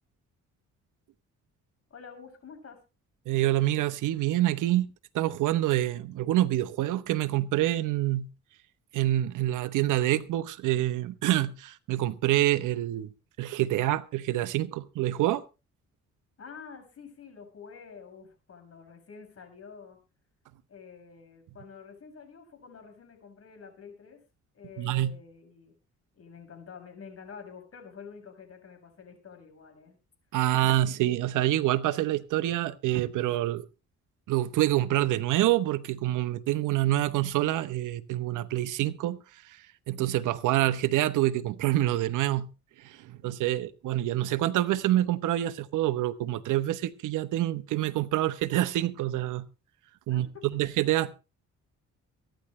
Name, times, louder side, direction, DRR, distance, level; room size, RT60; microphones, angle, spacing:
voice 1, 1.9-2.8 16.4-20.0 20.7-24.2 24.5-25.7 26.1-30.0 30.6-30.7 50.1-50.6, left 6 dB, 50° left, 6.9 m, -48 dB
voice 2, 3.3-4.9 5.1-8.3 8.9-13.1 13.4-15.4 24.8-25.1 30.3-33.6 34.3-39.2 39.5-39.6 39.9-42.5 42.8-49.4 50.1-51.1, right 14 dB, 85° right, 1.0 m, -26 dB
23.5 x 10.5 x 3.2 m
cardioid pair, 90°, 30 cm